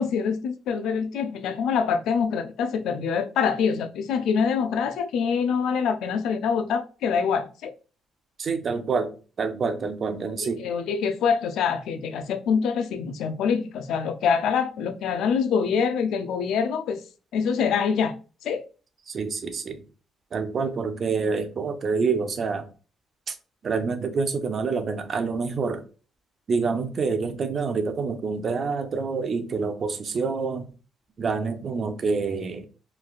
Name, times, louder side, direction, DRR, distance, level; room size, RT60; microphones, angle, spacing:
voice 1, 0.0-7.7 10.4-17.0 17.3-18.2 18.4-18.6, left 6 dB, 80° left, 0.4 m, -25 dB
voice 2, 8.4-9.1 9.4-10.6 19.1-19.8 20.3-22.7 23.3-23.4 23.6-25.8 26.5-30.7 31.2-32.7, right 4 dB, 50° right, 0.5 m, -27 dB
3.1 x 2.3 x 2.4 m
cardioid pair, 90°, 0 cm